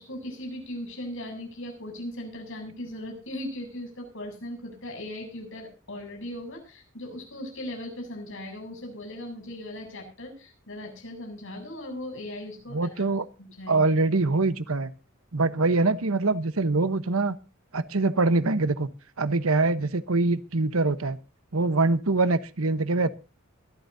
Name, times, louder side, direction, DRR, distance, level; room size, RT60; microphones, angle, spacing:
voice 1, 0.0-13.0 13.4-13.9, left 1 dB, 65° left, 3 dB, 7.8 m, -38 dB
voice 2, 12.7-13.3 13.7-14.9 15.3-17.3 17.7-18.9 19.2-21.2 21.5-23.1, right 3 dB, 75° right, 13 dB, 1.1 m, -24 dB
23.0 x 13.0 x 2.7 m, 0.32 s
head